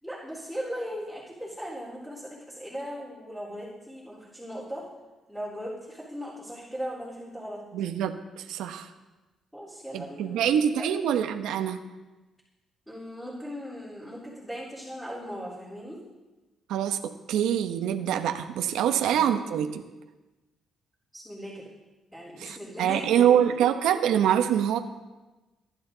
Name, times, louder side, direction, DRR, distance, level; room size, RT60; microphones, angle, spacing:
voice 1, 0.0-4.8 5.3-7.6 9.5-10.4 10.8-10.9 12.9-16.0 18.9-19.2 21.1-21.7 22.1-23.3, equal, 5° left, -6 dB, 4.2 m, -38 dB
voice 2, 7.7-8.9 9.9-11.8 16.7-19.8 22.4-24.8, right 9 dB, 90° right, 6 dB, 1.0 m, -25 dB
22.5 x 11.5 x 4.0 m, 1.2 s
cardioid pair, 90°, 0 cm